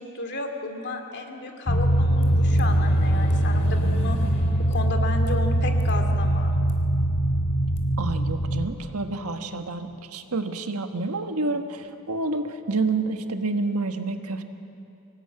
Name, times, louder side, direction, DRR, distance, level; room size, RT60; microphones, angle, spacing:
voice 1, 0.0-4.2 4.7-6.5, left 3 dB, 50° left, 4 dB, 2.4 m, -33 dB
sound 1, 1.7-8.7, right 1 dB, 80° left, 3.0 m, -22 dB
voice 2, 8.0-14.4, right 3 dB, 85° right, 6 dB, 1.4 m, -28 dB
24.0 x 18.5 x 8.8 m, 2.8 s
head